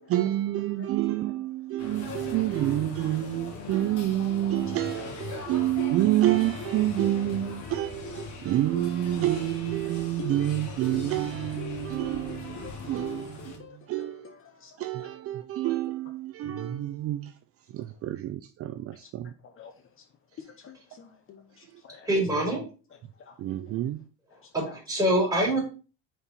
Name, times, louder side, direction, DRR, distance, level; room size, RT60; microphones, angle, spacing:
voice 1, 0.1-13.4 13.9-14.2 14.8-17.3 17.7-19.3 23.4-24.0, right 14 dB, 45° right, 0.4 m, -28 dB
sound 1, 1.8-13.6, left 4 dB, 65° left, 1.9 m, -40 dB
voice 2, 4.3-5.2 5.5-6.1 6.5-8.3 8.7-9.9 10.2-10.6 10.9-11.2 11.6-12.2 12.6-15.1 15.6-15.8 19.4-19.7 20.4-22.1 23.2-23.4 24.3-24.8, left 3 dB, 40° left, 0.8 m, -44 dB
voice 3, 21.9-22.6 24.5-25.6, right 1 dB, 10° right, 3.6 m, -25 dB
5.2 x 4.5 x 4.2 m
cardioid pair, 120°, 32 cm